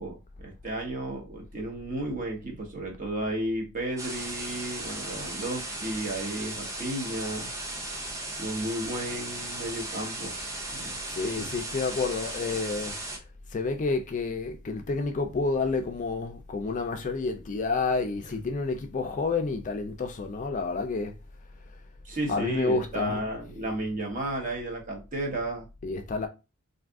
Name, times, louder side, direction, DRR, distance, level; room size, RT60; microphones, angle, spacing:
voice 1, 0.0-7.5 8.4-10.3 10.7-11.0 11.4-11.5 22.0-25.7, right 1 dB, 40° right, 1.0 m, -33 dB
sound 1, 4.0-13.2, right 2 dB, 15° right, 0.6 m, -36 dB
voice 2, 11.1-12.9 13.5-21.1 22.3-23.2 25.8-26.3, left 3 dB, 35° left, 0.4 m, -29 dB
2.6 x 2.4 x 3.5 m
head